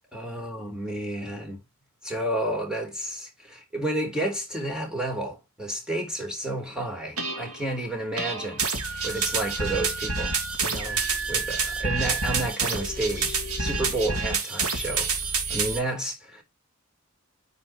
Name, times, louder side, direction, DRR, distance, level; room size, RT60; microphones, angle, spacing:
voice 1, 0.1-1.6 2.0-8.6 9.0-15.1 15.5-16.4, right 1 dB, 5° right, 3.8 m, -31 dB
sound 1, 7.2-7.6 8.2-15.8, right 4 dB, 80° right, 2.4 m, -28 dB
9.8 x 5.8 x 3.1 m
head